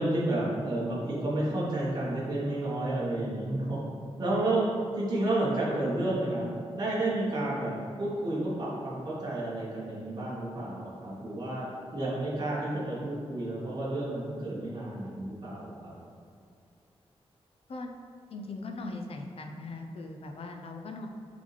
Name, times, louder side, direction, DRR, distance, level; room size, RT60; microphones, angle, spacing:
voice 1, 0.0-3.8 4.2-4.7 4.9-11.7 11.9-15.9, right 1 dB, 40° right, -7 dB, 1.4 m, -31 dB
voice 2, 18.3-21.1, left 2 dB, 65° left, 4 dB, 0.7 m, -39 dB
8.3 x 4.0 x 3.4 m, 2.4 s
wide cardioid pair, 135°, 11 cm